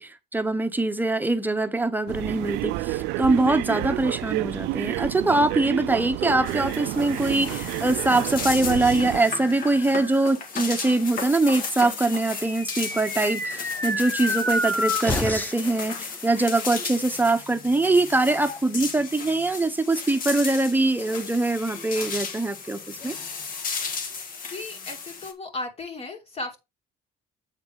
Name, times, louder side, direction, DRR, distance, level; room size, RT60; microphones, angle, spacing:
voice 1, 0.0-23.1, right 2 dB, 10° right, 1.0 m, -23 dB
sound 1, 2.1-9.2, right 18 dB, 90° right, 0.4 m, -29 dB
sound 2, 6.5-25.3, left 5 dB, 55° left, 1.8 m, -35 dB
sound 3, 12.1-15.7, left 1 dB, 10° left, 1.2 m, -28 dB
voice 2, 24.5-26.6, left 2 dB, 35° left, 2.6 m, -35 dB
8.2 x 3.9 x 4.9 m
cardioid pair, 110°, 17 cm